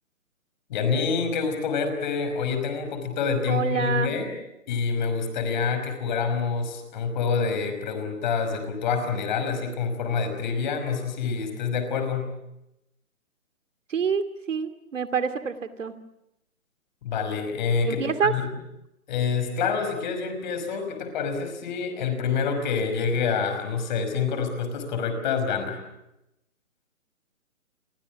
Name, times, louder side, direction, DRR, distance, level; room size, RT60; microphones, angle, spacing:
voice 1, 0.7-4.3 4.7-12.3 17.0-18.4 19.1-25.8, left 5 dB, 35° left, 8 dB, 5.5 m, -27 dB
voice 2, 3.5-4.1 13.9-15.9 17.9-18.3, right 6 dB, 60° right, 9 dB, 2.5 m, -27 dB
29.0 x 23.5 x 7.3 m, 0.87 s
hypercardioid pair, 155°, 42 cm